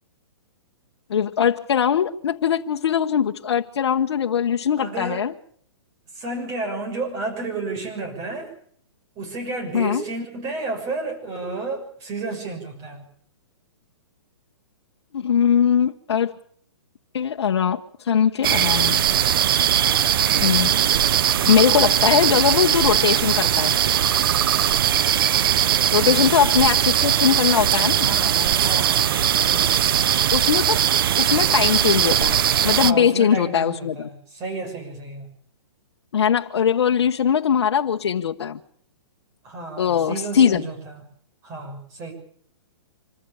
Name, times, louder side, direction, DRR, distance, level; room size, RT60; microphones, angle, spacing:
voice 1, 1.1-5.3 9.7-10.0 15.1-16.3 17.1-19.0 20.4-20.7 21.4-23.8 25.9-28.1 30.3-30.8 31.2-34.1 36.1-38.6 39.8-40.7, left 8 dB, 70° left, 4 dB, 1.1 m, -21 dB
voice 2, 4.8-5.3 6.1-8.5 9.1-13.0 26.0-26.7 28.0-29.1 29.4-30.1 32.8-35.3 39.4-40.9 41.4-42.1, right 3 dB, 25° right, 4 dB, 6.4 m, -31 dB
sound 1, 18.4-32.9, right 10 dB, 55° right, 0.9 m, -20 dB
26.0 x 14.5 x 8.7 m, 0.62 s
hypercardioid pair, 155°, 14 cm